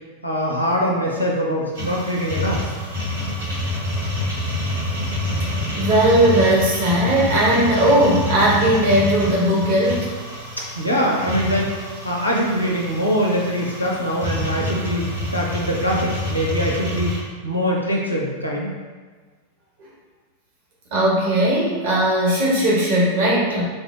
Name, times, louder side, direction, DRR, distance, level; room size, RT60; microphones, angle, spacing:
voice 1, 0.2-2.8 10.6-11.7 12.0-17.2 17.4-18.7, equal, 85° left, -3 dB, 0.6 m, -23 dB
sound 1, 1.7-17.2, left 1 dB, 75° right, 1.4 m, -27 dB
voice 2, 5.7-10.1 20.9-23.6, right 1 dB, 50° right, -6 dB, 0.8 m, -18 dB
3.3 x 2.0 x 3.2 m, 1.4 s
figure-of-eight pair, 90°, 0 cm